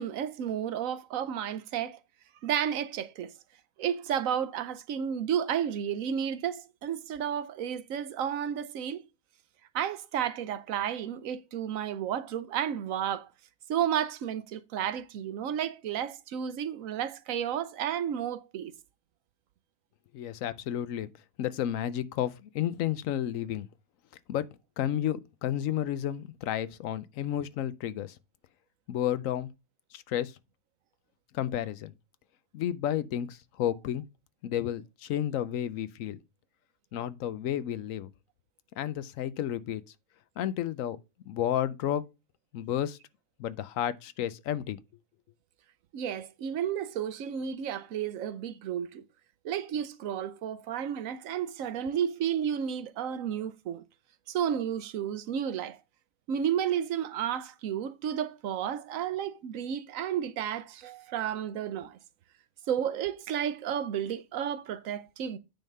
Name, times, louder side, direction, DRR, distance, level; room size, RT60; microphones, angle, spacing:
voice 1, 0.0-2.0 2.4-3.3 3.8-9.0 9.7-13.3 13.7-18.7 45.9-49.0 49.4-53.8 54.3-55.8 56.3-62.0 62.7-65.4, right 9 dB, 75° right, 1.1 m, -32 dB
voice 2, 20.1-21.1 21.4-23.7 24.3-24.4 24.8-28.1 28.9-29.5 29.9-30.3 31.3-31.9 32.5-34.0 34.4-36.2 36.9-38.1 38.8-39.8 40.4-41.0 41.3-42.0 42.5-43.0 43.4-44.8, left 11 dB, 75° left, 1.0 m, -31 dB
9.1 x 3.6 x 5.4 m
omnidirectional pair, 1.4 m